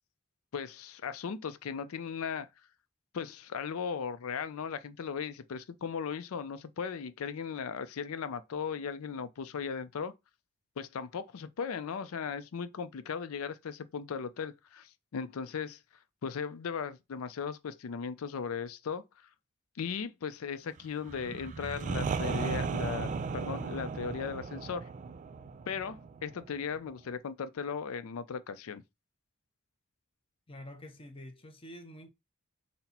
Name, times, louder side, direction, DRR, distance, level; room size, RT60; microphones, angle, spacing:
voice 1, 0.5-2.5 3.1-10.1 10.8-15.8 16.2-19.0 19.8-24.9 25.7-28.8, left 6 dB, 85° left, 0.4 m, -37 dB
sound 1, 21.1-26.8, right 5 dB, 35° right, 0.3 m, -36 dB
voice 2, 30.5-32.1, left 1 dB, 25° left, 0.7 m, -47 dB
4.1 x 2.1 x 4.2 m
head